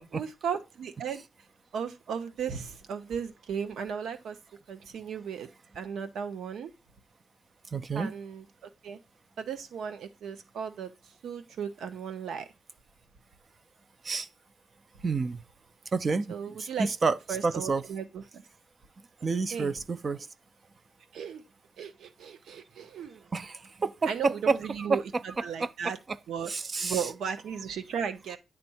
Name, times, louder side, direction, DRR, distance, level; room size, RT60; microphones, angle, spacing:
voice 1, 0.1-1.2 1.7-4.4 4.7-5.5 5.7-6.7 7.9-8.4 8.8-9.0 9.4-10.9 11.2-12.5 16.3-16.9 17.3-18.4 19.2-19.7 21.1-21.4 21.8-23.3 24.1-26.0 26.3-26.5 26.8-28.4, right 7 dB, 85° right, 1.1 m, -36 dB
voice 2, 7.7-8.1 14.0-14.3 15.0-15.4 15.9-17.2 17.4-17.8 19.2-20.3 23.3-24.1 24.5-24.6 24.9-25.0 25.6-25.7 26.5-27.0, right 4 dB, 35° right, 0.5 m, -29 dB
9.8 x 3.5 x 4.3 m
cardioid pair, 110°, 0 cm